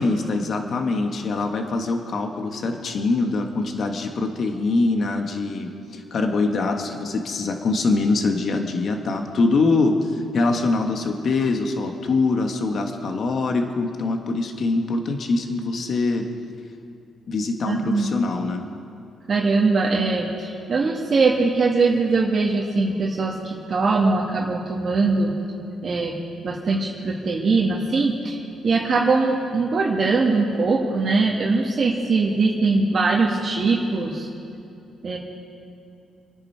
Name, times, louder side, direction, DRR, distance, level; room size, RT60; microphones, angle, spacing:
voice 1, 0.0-16.3 17.3-18.6, left 3 dB, 55° left, 4 dB, 1.5 m, -23 dB
voice 2, 17.7-18.1 19.3-25.3 25.8-26.2 26.4-34.3 35.0-35.2, right 3 dB, 45° right, -2 dB, 1.8 m, -21 dB
28.0 x 10.0 x 4.6 m, 2.7 s
cardioid pair, 90°, 0 cm